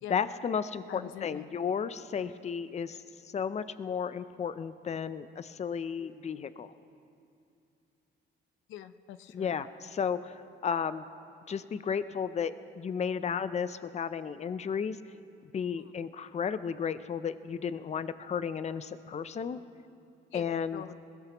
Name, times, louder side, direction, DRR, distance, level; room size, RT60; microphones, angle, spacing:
voice 1, 0.1-6.7 9.3-10.3 10.6-11.0 11.5-15.0 15.4-19.6 20.3-20.8, left 7 dB, 35° left, 14 dB, 0.5 m, -33 dB
voice 2, 0.9-1.5 5.8-5.9 8.7-9.5 15.8-15.9 19.5-19.7 20.3-20.5 20.7-20.9, left 11 dB, 90° left, 12 dB, 0.5 m, -44 dB
21.0 x 16.0 x 3.0 m, 2.6 s
cardioid pair, 90°, 20 cm